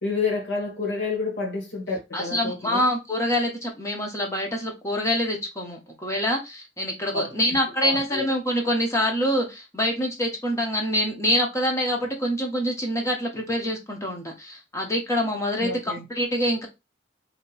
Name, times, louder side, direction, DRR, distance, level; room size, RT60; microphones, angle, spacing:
voice 1, 0.0-2.8 7.1-8.2 15.6-16.0, left 4 dB, 75° left, 1.7 m, -29 dB
voice 2, 2.1-16.7, equal, 15° left, 1.0 m, -26 dB
2.9 x 2.8 x 4.0 m
head